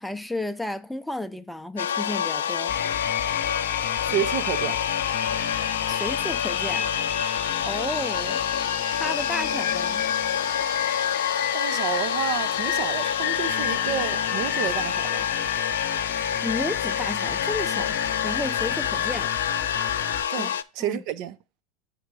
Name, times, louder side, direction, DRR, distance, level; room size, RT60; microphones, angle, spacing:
voice 1, 0.0-2.8 5.9-6.9 7.6-8.4 8.9-10.0 16.4-19.3 20.4-20.5 20.8-21.0, left 1 dB, ahead, 0.6 m, -32 dB
sound 1, 1.8-20.6, left 8 dB, 85° left, 0.3 m, -27 dB
sound 2, 2.7-20.2, left 10 dB, 55° left, 0.9 m, -32 dB
voice 2, 4.0-4.8 11.0-11.2 11.5-15.3 20.3-21.4, right 11 dB, 55° right, 0.6 m, -30 dB
7.3 x 3.8 x 4.7 m
hypercardioid pair, 95°, 0 cm